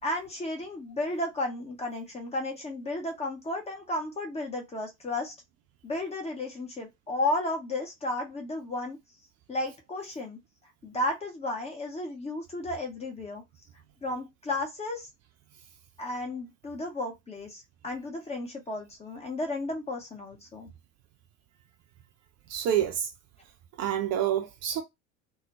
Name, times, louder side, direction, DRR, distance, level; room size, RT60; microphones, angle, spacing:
voice 1, 0.0-5.3 5.8-9.0 9.5-10.4 10.8-13.4 14.0-15.1 16.0-20.7, left 2 dB, 15° left, 0.7 m, -33 dB
voice 2, 22.5-23.1 23.8-24.8, right 10 dB, 40° right, 0.6 m, -27 dB
2.3 x 2.1 x 2.8 m
figure-of-eight pair, 65°, 42 cm